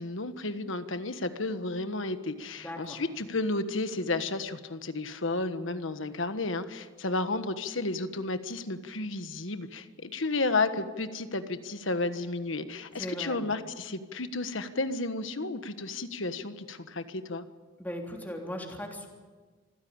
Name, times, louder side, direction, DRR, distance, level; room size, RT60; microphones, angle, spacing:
voice 1, 0.0-17.4, left 2 dB, 75° left, 10 dB, 1.4 m, -32 dB
voice 2, 2.5-3.0 13.0-13.4 17.8-19.1, equal, 10° left, 0 dB, 3.4 m, -38 dB
25.5 x 15.5 x 8.8 m, 1.4 s
head